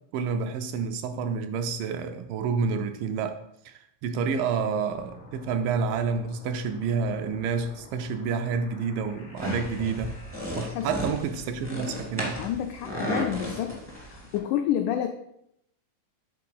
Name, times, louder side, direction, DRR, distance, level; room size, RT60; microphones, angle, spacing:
voice 1, 0.1-3.4 3.7-10.1 10.6-12.4, right 5 dB, 80° right, 7 dB, 2.1 m, -29 dB
sound 1, 4.9-10.7, left 2 dB, 60° left, 0.7 m, -50 dB
sound 2, 9.4-14.4, equal, 15° right, 0.5 m, -34 dB
voice 2, 10.6-10.9 12.4-15.1, left 10 dB, 90° left, 5 dB, 1.8 m, -29 dB
7.4 x 3.8 x 5.5 m, 0.75 s
omnidirectional pair, 4.1 m